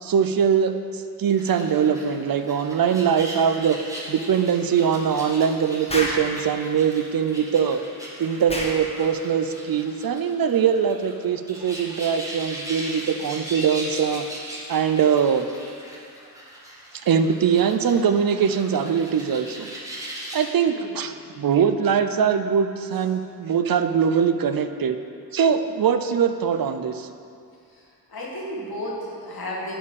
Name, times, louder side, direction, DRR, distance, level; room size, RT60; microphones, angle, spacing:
voice 1, 0.0-3.8 4.1-7.8 8.2-14.2 14.7-15.5 17.1-19.7 20.3-25.0 25.3-27.1, right 7 dB, 65° right, 9 dB, 0.5 m, -22 dB
sound 1, 1.3-20.5, right 1 dB, 10° right, 1.7 m, -39 dB
Explosion, 5.9-6.3 8.5-8.8, left 1 dB, 15° left, 1.3 m, -28 dB
voice 2, 27.7-29.7, left 1 dB, 70° left, -5 dB, 2.1 m, -33 dB
10.0 x 4.3 x 7.1 m, 2.4 s
wide cardioid pair, 90°, 38 cm